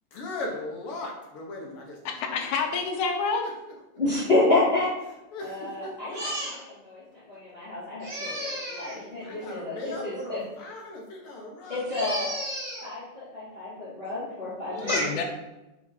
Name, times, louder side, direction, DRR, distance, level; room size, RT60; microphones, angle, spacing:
voice 1, 0.1-2.4 3.4-4.0 5.3-6.2 8.1-8.2 8.7-11.9, left 2 dB, 60° left, -1 dB, 1.8 m, -39 dB
voice 2, 2.2-3.5 14.9-15.2, left 5 dB, 80° left, 3 dB, 2.2 m, -27 dB
voice 3, 4.0-4.9 5.4-9.8 10.0-10.4 11.7-15.2, left 2 dB, 20° left, -10 dB, 1.9 m, -29 dB
5.5 x 4.9 x 5.1 m, 0.99 s
omnidirectional pair, 3.5 m